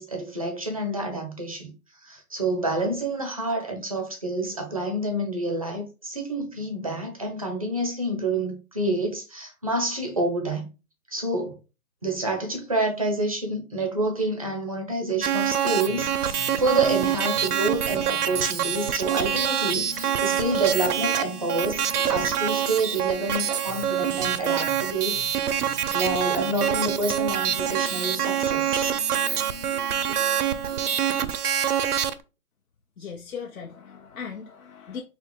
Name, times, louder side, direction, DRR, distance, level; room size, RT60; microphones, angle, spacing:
voice 1, 0.0-1.7 2.0-10.7 11.1-11.6 12.0-21.8 22.1-25.2 25.9-28.9, right 2 dB, 25° right, 0.5 m, -28 dB
sound 1, 15.2-32.1, right 9 dB, 80° right, 0.7 m, -26 dB
sound 2, 15.8-31.3, left 4 dB, 35° left, 1.0 m, -44 dB
voice 2, 33.0-35.0, left 6 dB, 65° left, 0.8 m, -38 dB
4.1 x 2.8 x 3.2 m
hypercardioid pair, 160°, 45 cm